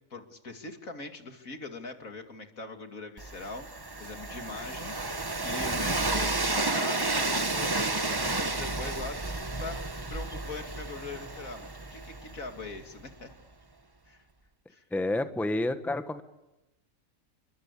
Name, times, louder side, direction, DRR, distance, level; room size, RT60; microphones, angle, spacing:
voice 1, 0.1-13.3 14.0-14.2 14.7-14.8, left 3 dB, 75° left, 5 dB, 3.1 m, -42 dB
Train, 3.2-13.0, right 2 dB, 20° right, 1.0 m, -31 dB
voice 2, 14.9-16.2, left 2 dB, ahead, 9 dB, 1.3 m, -29 dB
29.0 x 24.0 x 8.5 m, 0.98 s
omnidirectional pair, 1.4 m